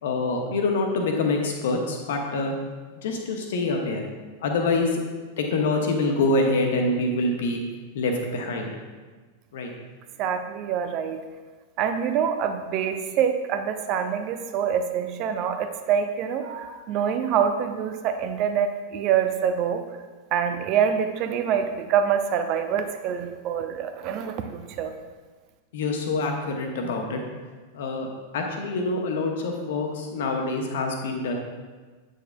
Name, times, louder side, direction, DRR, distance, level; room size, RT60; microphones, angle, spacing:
voice 1, 0.0-2.5 3.0-4.0 4.4-5.0 5.4-7.6 7.9-8.7 9.5-9.7 25.7-27.2 27.7-28.1 28.3-31.3, left 2 dB, 55° left, 2 dB, 1.0 m, -25 dB
voice 2, 10.2-11.2 11.8-19.9 20.3-24.9, right 8 dB, 40° right, 7 dB, 0.6 m, -25 dB
9.0 x 6.4 x 2.3 m, 1.4 s
figure-of-eight pair, 90°, 0 cm